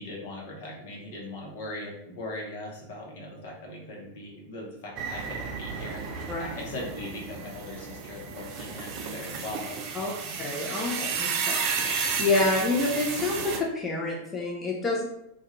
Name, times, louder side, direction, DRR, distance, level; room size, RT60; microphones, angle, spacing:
voice 1, 0.0-10.4, left 1 dB, 60° left, -2 dB, 0.8 m, -40 dB
sound 1, 5.0-13.6, right 5 dB, 45° right, 0.4 m, -33 dB
voice 2, 10.4-15.0, left 2 dB, 15° left, -3 dB, 0.6 m, -28 dB
2.4 x 2.3 x 2.9 m, 0.82 s
figure-of-eight pair, 90°, 0 cm